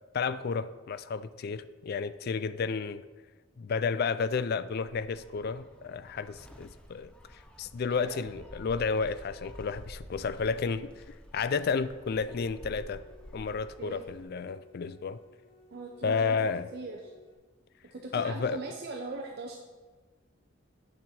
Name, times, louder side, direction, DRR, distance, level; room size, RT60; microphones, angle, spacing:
voice 1, 0.1-3.0 3.6-11.0 11.3-13.0 13.3-15.2 16.0-16.7 18.1-18.6, left 5 dB, 50° left, 14 dB, 0.4 m, -31 dB
Gull seagull, 4.9-14.2, equal, 5° left, 0.6 m, -50 dB
voice 2, 7.9-8.2 13.8-14.1 15.7-16.4 16.7-17.1 17.9-19.6, right 3 dB, 50° right, 1 dB, 0.7 m, -40 dB
sound 1, 11.6-17.3, left 3 dB, 30° left, 1.1 m, -58 dB
8.7 x 6.3 x 4.2 m, 1.3 s
head